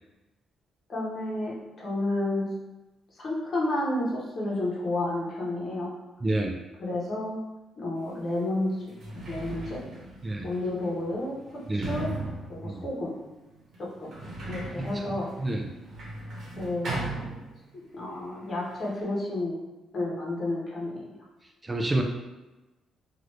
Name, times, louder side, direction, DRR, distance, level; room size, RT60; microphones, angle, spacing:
voice 1, 0.9-2.5 3.2-5.9 6.8-7.4 7.8-8.7 9.3-9.8 10.4-11.4 11.7-12.1 12.5-13.1 14.0-14.1 14.5-15.3 16.5-16.9 17.9-19.6 19.9-21.1, left 2 dB, 45° left, -4 dB, 1.1 m, -30 dB
voice 2, 6.2-6.5 10.2-10.5 11.7-11.9 12.6-12.8 14.8-15.1 15.4-15.7 21.6-22.0, right 2 dB, 20° right, 2 dB, 0.3 m, -28 dB
Sliding door, 8.1-8.2 8.8-17.9 18.2-19.0, right 2 dB, 60° right, 1.0 m, -38 dB
3.0 x 2.5 x 3.1 m, 1.1 s
cardioid pair, 90°, 0 cm